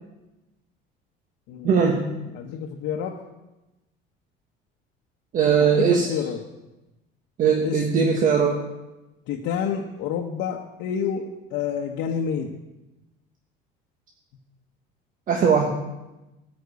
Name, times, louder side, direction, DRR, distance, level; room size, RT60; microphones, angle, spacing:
voice 1, 1.6-2.1 5.3-6.1 7.4-8.6 15.3-15.8, right 6 dB, 45° right, 2 dB, 1.3 m, -20 dB
voice 2, 2.3-3.2 5.6-6.4 7.6-7.8 9.3-12.5, left 7 dB, 75° left, 0 dB, 1.1 m, -28 dB
14.5 x 5.3 x 8.3 m, 1.0 s
cardioid pair, 140°, 19 cm